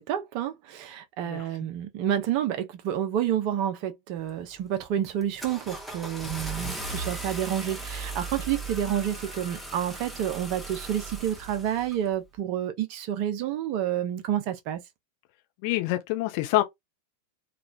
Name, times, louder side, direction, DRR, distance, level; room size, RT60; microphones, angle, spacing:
voice 1, 0.0-14.8, right 10 dB, 45° right, 0.7 m, -29 dB
Car / Engine starting, 4.3-4.6 5.0-12.0, right 2 dB, ahead, 0.8 m, -37 dB
voice 2, 15.6-16.6, left 16 dB, 45° left, 0.7 m, -26 dB
3.1 x 2.4 x 2.3 m
figure-of-eight pair, 90°, 0 cm